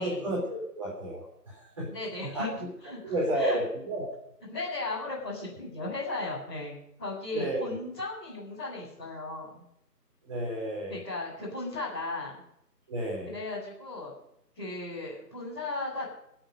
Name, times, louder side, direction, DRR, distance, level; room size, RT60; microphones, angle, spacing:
voice 1, 0.0-1.9 2.3-2.5 3.0-4.1 6.2-6.3 7.3-7.7 10.2-11.0 12.9-13.3, right 1 dB, 20° right, -6 dB, 3.8 m, -31 dB
voice 2, 1.8-2.5 2.8-3.6 4.5-9.6 10.9-12.4 13.2-14.1 14.5-16.0, left 2 dB, 5° left, -18 dB, 2.8 m, -36 dB
21.0 x 7.9 x 6.7 m, 0.76 s
figure-of-eight pair, 170°, 49 cm